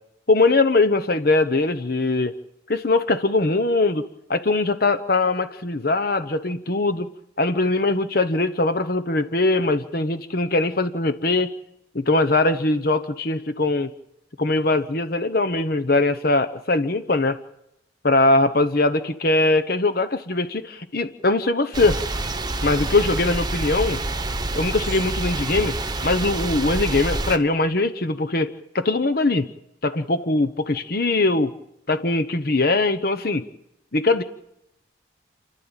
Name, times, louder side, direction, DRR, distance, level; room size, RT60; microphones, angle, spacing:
voice 1, 0.3-2.3 2.7-4.0 4.3-7.1 7.4-11.5 11.9-13.9 14.4-17.4 18.0-22.0 22.6-24.0 24.6-25.8 26.0-29.5 29.8-31.5 31.9-33.4 33.9-34.2, left 2 dB, 50° left, 10 dB, 1.0 m, -21 dB
sound 1, 21.7-27.4, right 2 dB, 20° right, 1.3 m, -27 dB
29.5 x 12.0 x 9.0 m, 0.84 s
head